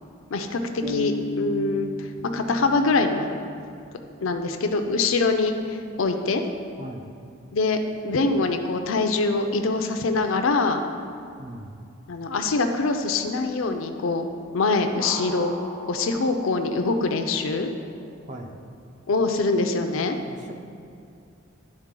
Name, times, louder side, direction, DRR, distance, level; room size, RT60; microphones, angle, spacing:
voice 1, 0.3-3.4 4.2-6.4 7.5-10.8 12.1-14.3 14.5-15.5 15.9-17.7 19.1-20.2, left 3 dB, 75° left, 6 dB, 0.5 m, -24 dB
sound 1, 0.8-4.6, left 2 dB, 60° right, 0.9 m, -34 dB
sound 2, 7.4-9.7 11.1-11.2 15.0-18.6, equal, 85° right, 1.1 m, -42 dB
voice 2, 11.4-11.8 18.3-18.6 20.3-20.5, right 1 dB, 40° right, 3 dB, 0.6 m, -39 dB
11.0 x 4.0 x 3.7 m, 2.5 s
head